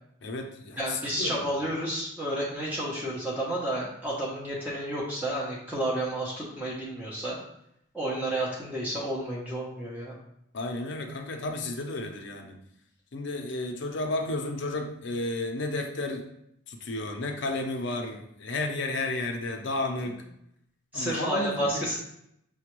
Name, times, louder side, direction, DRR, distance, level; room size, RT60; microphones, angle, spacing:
voice 1, 0.2-1.4 10.5-12.6 13.1-16.2 16.7-20.2 20.9-21.8, left 2 dB, 55° left, 4 dB, 0.5 m, -32 dB
voice 2, 0.8-7.4 7.9-10.1 20.9-21.9, right 1 dB, 10° right, -5 dB, 0.7 m, -31 dB
5.9 x 2.2 x 3.0 m, 0.75 s
head